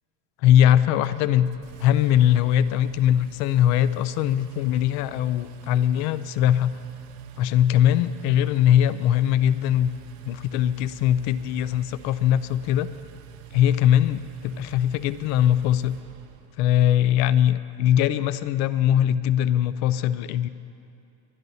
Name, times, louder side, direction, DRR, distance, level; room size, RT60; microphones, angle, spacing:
voice 1, 0.4-1.5 1.8-6.8 7.4-9.9 10.3-12.9 13.5-16.0 16.6-20.5, left 11 dB, 45° left, 15 dB, 0.5 m, -21 dB
Engine, 1.0-16.7, right 9 dB, 85° right, 0.9 m, -46 dB
21.5 x 10.0 x 4.1 m, 2.6 s
cardioid pair, 160°, 38 cm